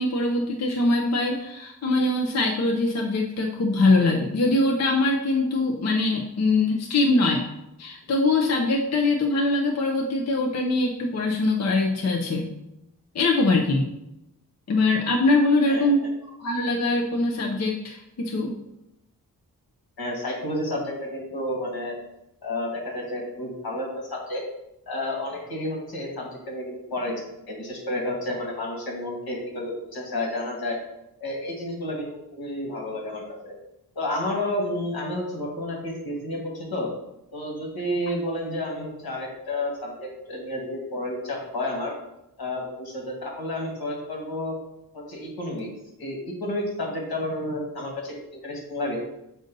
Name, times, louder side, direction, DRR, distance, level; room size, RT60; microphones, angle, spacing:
voice 1, 0.0-7.5 7.8-12.5 13.1-13.9 14.7-16.0 16.2-18.5, left 2 dB, 45° left, 0 dB, 0.6 m, -23 dB
voice 2, 20.0-22.0 22.4-24.4 24.9-30.8 31.2-33.6 34.0-36.9 37.3-41.9 42.4-44.5 44.9-45.7 46.0-49.0, left 1 dB, 80° left, -1 dB, 1.7 m, -31 dB
7.6 x 2.7 x 5.3 m, 0.86 s
wide cardioid pair, 160°, 36 cm